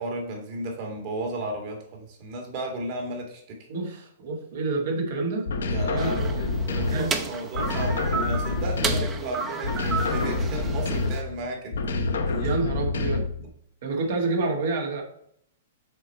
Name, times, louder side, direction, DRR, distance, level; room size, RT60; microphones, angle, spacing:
voice 1, 0.0-3.6 5.7-6.4 6.7-12.5, right 2 dB, 45° right, 2 dB, 2.1 m, -34 dB
voice 2, 3.7-5.5 5.9-7.2 12.3-13.5 13.8-15.0, right 3 dB, 65° right, 2 dB, 1.8 m, -29 dB
sound 1, 5.5-7.2 7.5-9.3 9.6-11.3 11.7-13.4, left 3 dB, 85° left, 0.9 m, -27 dB
sound 2, 6.0-11.2, right 4 dB, 20° right, 0.7 m, -32 dB
6.5 x 4.5 x 4.4 m, 0.70 s
hypercardioid pair, 135°, 0 cm